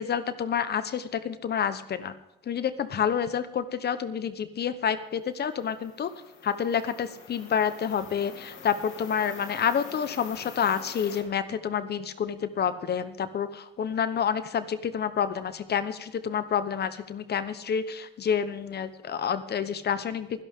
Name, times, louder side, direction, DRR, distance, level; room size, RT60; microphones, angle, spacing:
voice 1, 0.0-2.1 2.5-6.1 6.4-20.4, left 7 dB, 55° left, 12 dB, 1.1 m, -28 dB
sound 1, 5.3-11.2, left 6 dB, 85° left, 2.9 m, -46 dB
23.5 x 11.0 x 3.7 m, 0.87 s
cardioid pair, 90°, 20 cm